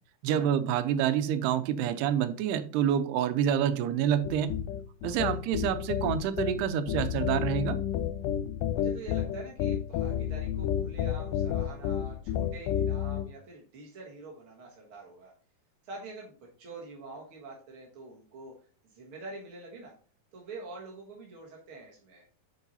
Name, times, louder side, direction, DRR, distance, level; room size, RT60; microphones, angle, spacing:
voice 1, 0.2-4.5 5.0-7.8, right 9 dB, 90° right, 11 dB, 2.8 m, -27 dB
sound 1, 4.2-13.2, left 9 dB, 85° left, 1.9 m, -31 dB
voice 2, 5.0-5.4 8.7-15.3 15.8-18.5 18.8-19.9 20.3-22.2, right 3 dB, 55° right, -2 dB, 1.5 m, -46 dB
9.5 x 4.8 x 4.1 m, 0.41 s
omnidirectional pair, 4.6 m